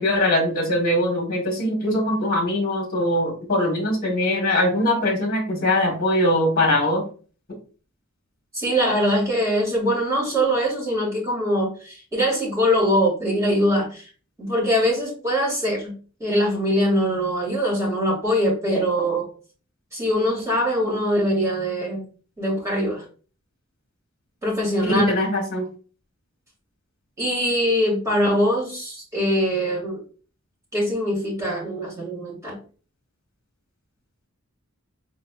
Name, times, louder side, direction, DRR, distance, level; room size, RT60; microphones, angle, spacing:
voice 1, 0.0-7.0 24.8-25.6, left 1 dB, 40° left, 1 dB, 1.3 m, -22 dB
voice 2, 8.5-14.1 14.4-15.9 16.2-19.3 19.9-22.0 22.4-23.0 24.4-25.0 27.2-30.0 30.7-32.6, equal, 15° right, -4 dB, 2.2 m, -22 dB
4.4 x 3.8 x 2.4 m, 0.39 s
head